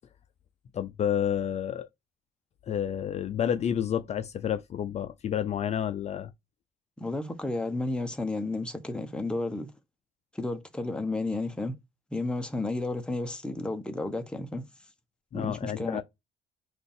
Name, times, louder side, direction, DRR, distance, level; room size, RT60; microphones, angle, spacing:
voice 1, 0.7-1.9 2.6-6.3 15.3-16.0, left 9 dB, 40° left, 0.4 m, -30 dB
voice 2, 7.0-9.7 10.3-11.8 12.1-14.7 15.3-16.0, left 2 dB, 5° left, 0.7 m, -32 dB
4.1 x 2.5 x 3.5 m
cardioid pair, 110°, 17 cm